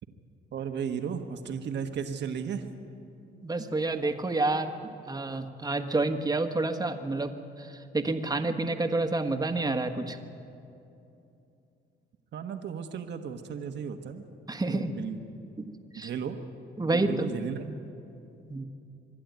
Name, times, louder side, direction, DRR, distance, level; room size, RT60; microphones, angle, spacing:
voice 1, 0.5-2.7 12.3-14.3 14.7-15.2 15.9-16.4 16.9-17.8, right 7 dB, 60° right, 6 dB, 1.4 m, -35 dB
voice 2, 3.4-7.3 7.6-10.2 14.5-14.9 15.7-16.1 16.8-17.1 18.5-18.6, right 2 dB, 20° right, 6 dB, 1.5 m, -29 dB
25.5 x 11.5 x 9.4 m, 2.7 s
cardioid pair, 90°, 20 cm